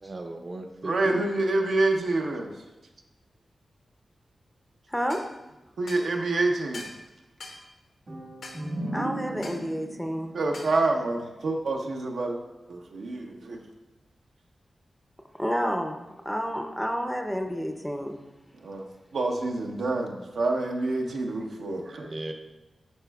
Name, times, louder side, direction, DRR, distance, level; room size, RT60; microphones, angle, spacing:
voice 1, 0.0-1.3 21.9-22.3, right 2 dB, 40° right, 5 dB, 0.6 m, -36 dB
voice 2, 0.8-2.5 5.8-6.8 10.3-12.4 12.7-13.6 18.5-18.8 19.1-22.1, right 2 dB, 85° right, 1 dB, 0.7 m, -27 dB
sound 1, 5.1-5.3 5.9-6.1 6.7-7.0 7.4-7.6 8.4-8.6 9.4-9.6 10.5-10.8, left 2 dB, 90° left, 1.0 m, -42 dB
sound 2, 8.1-11.7, right 1 dB, 65° right, 1.6 m, -37 dB
voice 3, 8.9-10.3 15.4-18.2, equal, ahead, 4 dB, 0.5 m, -30 dB
10.5 x 4.2 x 2.3 m, 1.0 s
wide cardioid pair, 105°, 0 cm